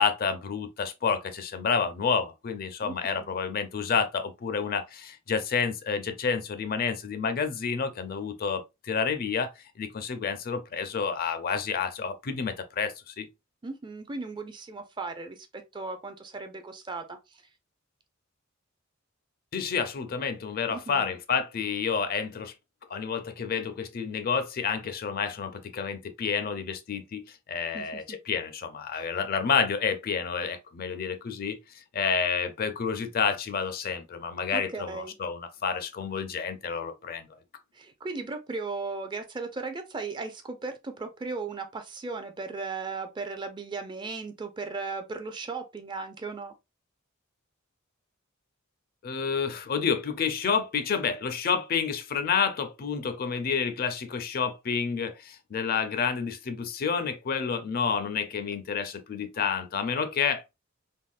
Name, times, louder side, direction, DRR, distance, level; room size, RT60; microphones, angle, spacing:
voice 1, 0.0-9.5 9.8-13.3 19.5-22.5 22.9-31.6 31.9-37.3 49.0-60.4, left 6 dB, 45° left, 0.4 m, -29 dB
voice 2, 2.8-3.4 13.6-17.4 20.7-21.2 27.7-28.2 28.9-29.1 34.5-35.1 37.7-46.5, right 4 dB, 25° right, 0.4 m, -37 dB
3.5 x 2.1 x 2.4 m
head